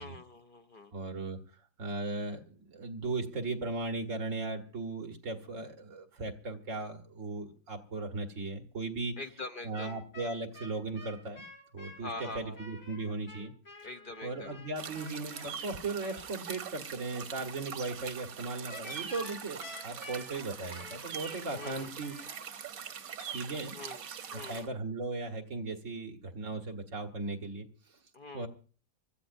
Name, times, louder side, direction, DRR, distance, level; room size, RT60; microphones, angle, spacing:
voice 1, 0.0-0.9 9.2-10.0 12.0-12.6 13.8-14.6 21.5-21.9 23.7-24.0 24.3-24.7 28.1-28.5, left 2 dB, 45° left, 6 dB, 0.9 m, -44 dB
voice 2, 0.9-1.4 1.8-9.1 9.6-11.4 11.7-13.5 14.2-22.2 23.3-23.8 24.5-27.7 28.3-28.5, right 3 dB, 65° right, 5 dB, 1.9 m, -37 dB
sound 1, 9.7-16.2 18.7-22.3, left 2 dB, 75° left, 7.4 m, -49 dB
sound 2, 14.8-24.7, right 7 dB, 85° right, 1.4 m, -43 dB
25.0 x 14.0 x 2.6 m, 0.39 s
omnidirectional pair, 1.4 m